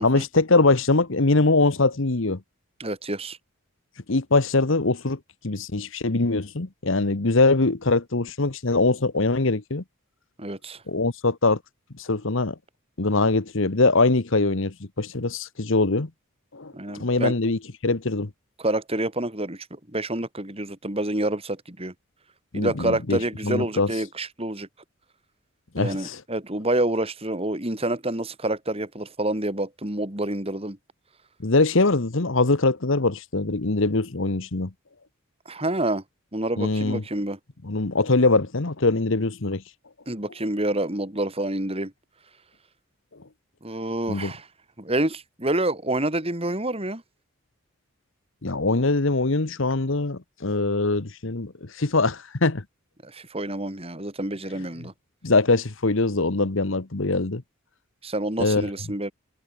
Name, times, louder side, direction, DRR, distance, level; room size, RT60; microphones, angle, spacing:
voice 1, 0.0-2.4 4.1-5.2 5.4-9.8 10.9-11.6 12.0-12.5 13.0-16.1 16.5-18.3 22.5-23.2 23.4-23.9 25.7-26.2 31.4-34.7 36.6-37.0 37.6-39.6 44.1-44.3 48.4-52.6 55.2-57.4 58.4-58.7, left 3 dB, 60° left, 1.2 m, -22 dB
voice 2, 2.8-3.4 10.4-10.8 16.7-17.4 18.6-21.9 22.5-24.7 25.8-30.8 35.5-36.0 36.3-37.4 40.1-41.9 43.6-44.5 44.8-47.0 53.0-54.9 58.0-59.1, right 1 dB, 25° right, 2.8 m, -28 dB
head